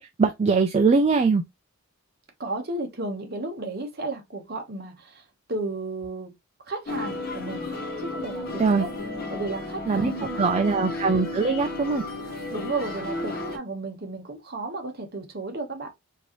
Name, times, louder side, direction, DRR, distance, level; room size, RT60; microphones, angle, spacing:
voice 1, 0.0-1.4 8.6-8.8 9.9-10.1 10.4-12.0, right 4 dB, 30° right, 0.3 m, -22 dB
voice 2, 2.4-6.3 6.7-7.7 8.0-8.9 9.3-10.9 12.5-15.9, right 2 dB, 45° right, 1.1 m, -33 dB
sound 1, 6.9-13.6, left 2 dB, 45° left, 1.1 m, -33 dB
4.4 x 2.7 x 3.0 m
head